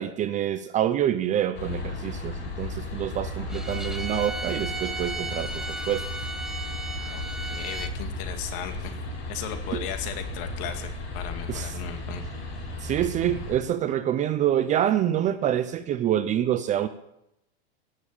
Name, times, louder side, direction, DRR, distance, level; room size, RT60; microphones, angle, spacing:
voice 1, 0.0-6.0 9.7-9.8 11.5-11.8 12.8-16.9, right 11 dB, 25° right, 12 dB, 0.6 m, -26 dB
sound 1, 1.5-13.6, left 2 dB, 80° left, 7.3 m, -34 dB
Bowed string instrument, 3.5-7.9, right 2 dB, ahead, 1.0 m, -35 dB
voice 2, 7.5-8.9 9.3-12.2, left 9 dB, 45° left, 7 dB, 2.2 m, -36 dB
17.5 x 7.1 x 8.8 m, 0.83 s
supercardioid pair, 145°, 32 cm